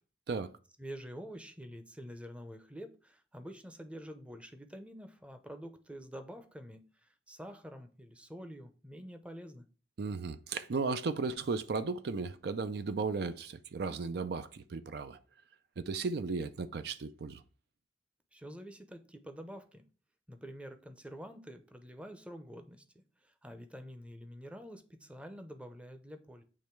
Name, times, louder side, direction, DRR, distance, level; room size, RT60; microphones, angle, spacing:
voice 1, 0.8-9.7 18.3-19.8 20.3-23.0 23.4-26.4, equal, 5° right, 0.6 m, -47 dB
voice 2, 10.0-15.2 15.8-17.4, right 4 dB, 60° right, 0.4 m, -35 dB
8.5 x 3.1 x 4.5 m
head